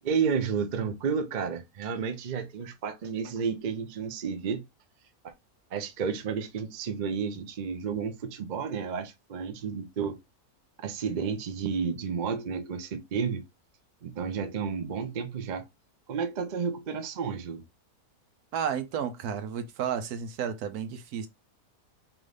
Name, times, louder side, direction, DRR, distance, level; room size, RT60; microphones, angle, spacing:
voice 1, 0.0-4.6 5.2-5.3 5.7-10.2 10.8-13.4 14.0-15.6 16.1-17.6, right 6 dB, 50° right, 0.5 m, -31 dB
voice 2, 18.5-21.3, right 8 dB, 80° right, 1.2 m, -32 dB
3.9 x 3.1 x 3.2 m
omnidirectional pair, 1.6 m